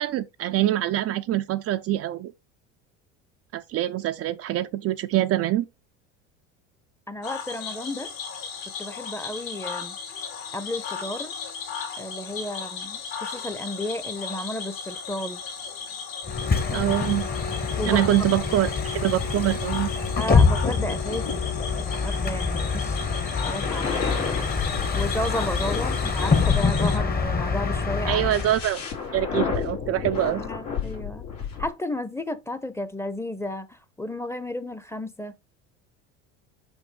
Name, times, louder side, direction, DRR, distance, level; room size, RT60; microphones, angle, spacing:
voice 1, 0.0-2.3 3.5-5.7 16.7-17.3 17.9-19.9 28.1-28.8 29.1-30.4, right 13 dB, 40° right, 0.5 m, -24 dB
voice 2, 7.1-8.1 8.8-10.0 10.5-11.4 12.0-15.4 17.8-18.0 18.3-18.4 20.2-21.5 21.8-24.1 24.9-28.2 30.3-31.3 31.6-35.3, left 1 dB, 5° left, 0.8 m, -33 dB
Cricket / Frog, 7.2-27.0, left 6 dB, 65° left, 2.6 m, -36 dB
Bus, 16.2-28.7, left 4 dB, 25° left, 1.1 m, -25 dB
sound 1, 23.6-31.7, left 7 dB, 85° left, 2.8 m, -32 dB
5.6 x 5.3 x 3.2 m
hypercardioid pair, 80°, 36 cm